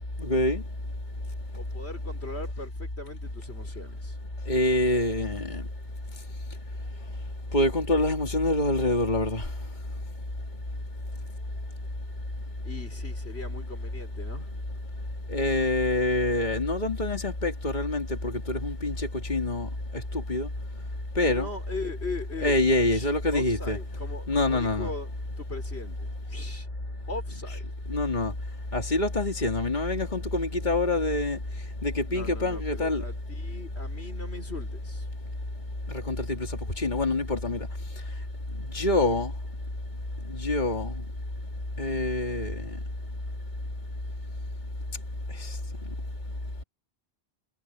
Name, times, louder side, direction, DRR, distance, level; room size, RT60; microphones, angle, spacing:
voice 1, 0.2-0.6 4.5-5.6 7.5-9.5 15.3-19.7 20.1-20.5 21.2-21.5 22.4-23.8 24.3-24.9 27.9-28.3 28.7-31.4 31.8-33.0 36.1-37.7 38.7-39.3 40.3-40.9 41.8-42.6 45.4-45.6, left 2 dB, 45° left, 2.9 m, -26 dB
voice 2, 1.5-4.2 12.6-14.6 21.2-22.6 22.9-26.7 27.1-27.6 32.1-35.1, left 2 dB, 80° left, 4.8 m, -39 dB
omnidirectional pair, 1.1 m